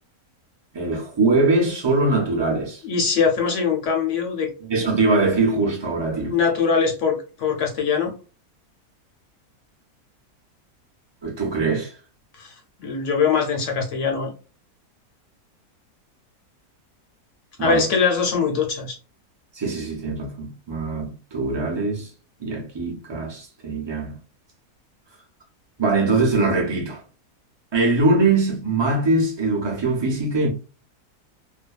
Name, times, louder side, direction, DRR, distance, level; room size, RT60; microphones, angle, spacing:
voice 1, 0.7-2.8 4.7-6.3 11.2-11.9 17.6-17.9 19.5-22.1 22.4-24.2 25.8-27.0 27.7-30.5, right 3 dB, 35° right, 0.4 m, -22 dB
voice 2, 2.8-4.5 6.3-8.1 12.3-14.3 17.6-19.0, left 5 dB, 60° left, 0.9 m, -22 dB
2.5 x 2.2 x 2.2 m
omnidirectional pair, 1.6 m